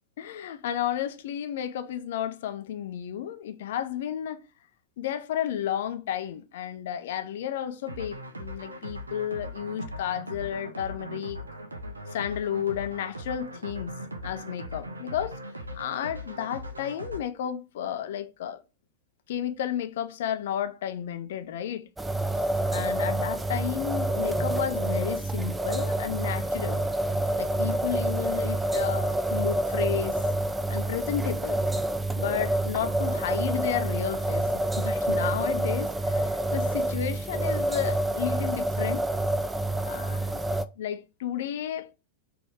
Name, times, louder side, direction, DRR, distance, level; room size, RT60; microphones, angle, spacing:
voice 1, 0.2-4.4 5.0-11.4 12.1-13.9 14.2-15.4 15.7-18.6 19.3-21.9 22.7-26.8 27.4-30.2 30.7-31.6 32.2-34.4 34.8-39.1 39.8-40.4 40.8-41.9, left 10 dB, 55° left, 0.5 m, -32 dB
sound 1, 7.9-17.2, equal, 80° right, 0.6 m, -39 dB
sound 2, 22.0-40.6, right 1 dB, 10° right, 0.3 m, -28 dB
4.1 x 2.9 x 4.5 m
figure-of-eight pair, 90°, 0 cm